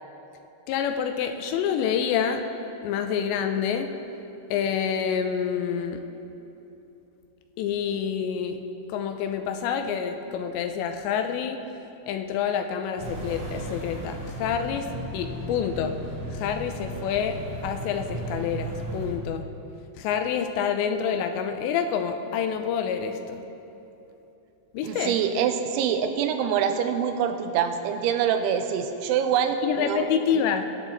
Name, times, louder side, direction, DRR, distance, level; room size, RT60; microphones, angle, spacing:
voice 1, 0.7-2.4 2.8-3.9 4.5-6.0 7.6-8.6 8.9-11.6 12.1-14.9 15.1-16.0 16.3-19.5 20.0-23.4 24.7-25.2 29.6-30.6, left 7 dB, 80° left, 6 dB, 2.8 m, -27 dB
sound 1, 13.0-19.1, right 1 dB, 50° right, 4.9 m, -35 dB
voice 2, 24.8-30.1, right 8 dB, 90° right, 7 dB, 3.2 m, -25 dB
22.5 x 11.0 x 4.1 m, 3.0 s
omnidirectional pair, 5.3 m